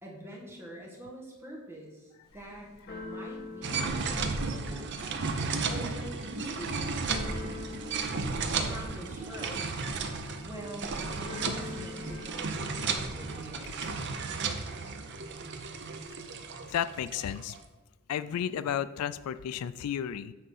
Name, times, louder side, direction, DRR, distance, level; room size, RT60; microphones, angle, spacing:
voice 1, 0.0-5.0 5.7-7.6 8.6-9.8 10.4-13.8, equal, 10° right, -3 dB, 1.6 m, -45 dB
Keyboard (musical), 2.2-14.3, left 2 dB, 45° left, 2.0 m, -46 dB
sound 1, 3.6-17.6, right 4 dB, 50° right, 0.7 m, -34 dB
voice 2, 16.7-17.5 18.1-20.3, left 9 dB, 80° left, 15 dB, 0.3 m, -33 dB
7.7 x 4.1 x 5.4 m, 1.2 s
head